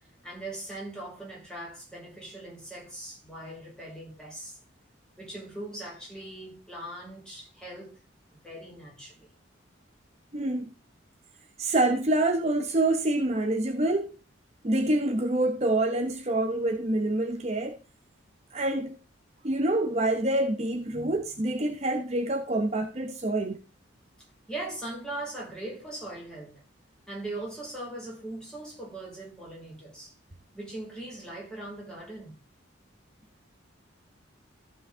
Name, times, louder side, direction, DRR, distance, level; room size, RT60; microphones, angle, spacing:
voice 1, 0.2-4.6 5.2-8.0 8.3-9.3 24.5-26.6 27.1-30.2 30.5-32.4, right 1 dB, 5° left, 5.8 m, -40 dB
voice 2, 10.3-10.7 11.6-14.1 14.6-17.8 18.5-19.0 19.4-23.6, right 2 dB, 35° right, 0.9 m, -26 dB
14.5 x 5.8 x 3.8 m
head